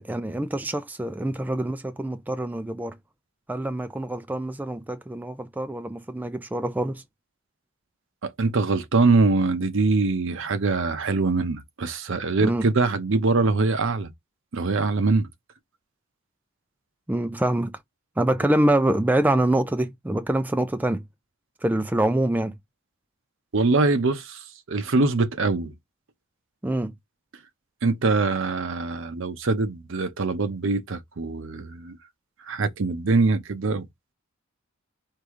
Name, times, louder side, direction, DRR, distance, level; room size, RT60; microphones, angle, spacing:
voice 1, 0.0-3.0 3.5-7.0 12.4-12.7 17.1-17.8 18.2-21.0 21.6-22.5 26.6-26.9, right 1 dB, 10° right, 0.3 m, -25 dB
voice 2, 8.2-14.1 14.5-15.3 23.5-24.4 24.7-25.7 27.8-32.0 32.5-33.9, right 3 dB, 65° right, 0.7 m, -23 dB
4.7 x 2.7 x 3.6 m
head